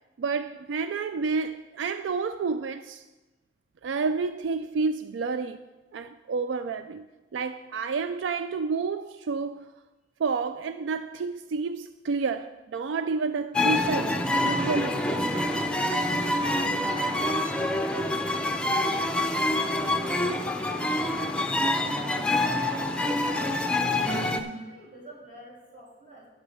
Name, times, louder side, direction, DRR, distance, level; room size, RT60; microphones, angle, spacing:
voice 1, 0.2-3.0 3.8-5.6 5.9-7.0 7.3-9.7 10.2-15.5, right 4 dB, 90° right, 0.4 m, -30 dB
String quartet in Paris street, 13.5-24.4, left 1 dB, 5° left, 0.6 m, -26 dB
voice 2, 16.9-18.6 18.9-21.3 21.9-26.3, right 1 dB, 45° right, 3.2 m, -49 dB
10.0 x 6.1 x 6.4 m
head